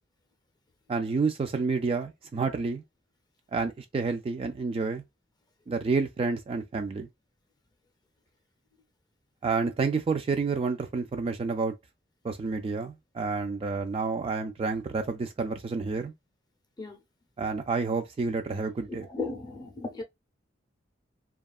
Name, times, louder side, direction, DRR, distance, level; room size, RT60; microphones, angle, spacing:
voice 1, 0.9-2.8 3.5-5.0 5.7-7.1 9.4-11.7 12.2-16.1 17.4-19.0, right 4 dB, 30° right, 0.3 m, -29 dB
voice 2, 18.9-20.0, left 3 dB, 20° left, 0.6 m, -36 dB
2.7 x 2.3 x 2.2 m
head